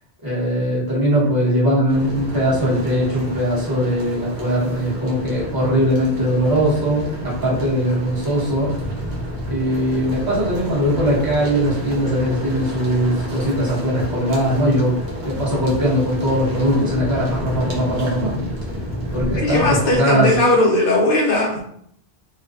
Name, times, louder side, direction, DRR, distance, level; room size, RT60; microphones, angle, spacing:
voice 1, 0.2-8.7 9.5-14.9 15.2-18.7 19.1-20.3, equal, 20° right, -7 dB, 0.8 m, -20 dB
sound 1, 1.9-20.0, equal, 55° right, 0.7 m, -30 dB
voice 2, 19.4-21.6, left 1 dB, 60° left, -2 dB, 0.8 m, -18 dB
2.5 x 2.1 x 2.4 m, 0.68 s
omnidirectional pair, 1.1 m